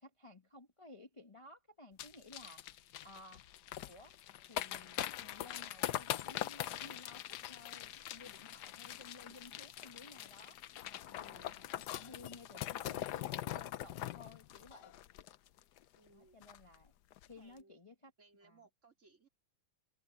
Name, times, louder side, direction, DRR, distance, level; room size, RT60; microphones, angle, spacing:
voice 1, 0.0-3.5 3.8-4.2 4.5-15.0 16.1-16.9 17.2-18.1 18.4-18.6, left 2 dB, 20° left, 1.2 m, -57 dB
sound 1, 2.0-15.8 16.1-16.2 16.4-16.7 17.1-17.3, left 12 dB, 70° left, 1.1 m, -43 dB
voice 2, 15.9-16.4 17.4-17.8 18.2-19.3, right 3 dB, 35° right, 3.3 m, -65 dB
open air
omnidirectional pair, 2.1 m